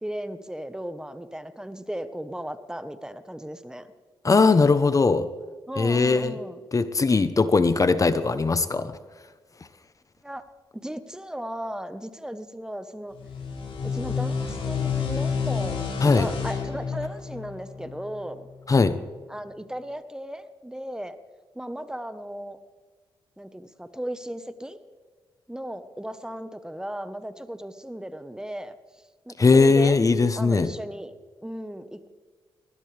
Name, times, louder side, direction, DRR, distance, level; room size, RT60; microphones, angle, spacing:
voice 1, 0.0-3.9 5.7-6.6 10.2-10.4 10.7-13.2 13.9-15.8 16.1-18.5 19.3-21.2 21.5-22.6 23.4-24.8 25.5-28.7 29.3-30.0 30.3-31.1 31.4-32.1, equal, 5° right, 11 dB, 1.2 m, -36 dB
voice 2, 4.2-5.3 5.8-6.3 6.7-8.9 16.0-16.3 18.7-19.0 29.4-30.7, left 4 dB, 35° left, 12 dB, 0.9 m, -19 dB
sound 1, 13.1-18.4, left 6 dB, 75° left, 5.6 m, -29 dB
20.5 x 18.5 x 3.4 m, 1.4 s
cardioid pair, 60°, 9 cm